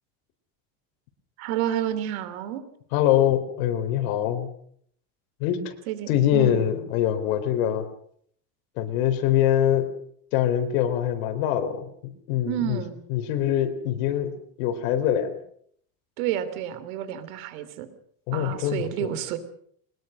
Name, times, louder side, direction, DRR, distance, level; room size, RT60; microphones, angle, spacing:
voice 1, 1.4-2.6 5.9-6.7 12.4-13.0 16.2-17.9 18.3-19.4, right 11 dB, 85° right, 12 dB, 3.3 m, -30 dB
voice 2, 2.9-4.5 5.4-5.8 6.1-7.9 8.8-9.9 10.3-11.9 12.3-12.8 13.1-14.3 14.6-15.3 18.3-18.8, left 11 dB, 80° left, 7 dB, 4.0 m, -23 dB
22.5 x 20.0 x 6.5 m, 0.64 s
cardioid pair, 155°, 41 cm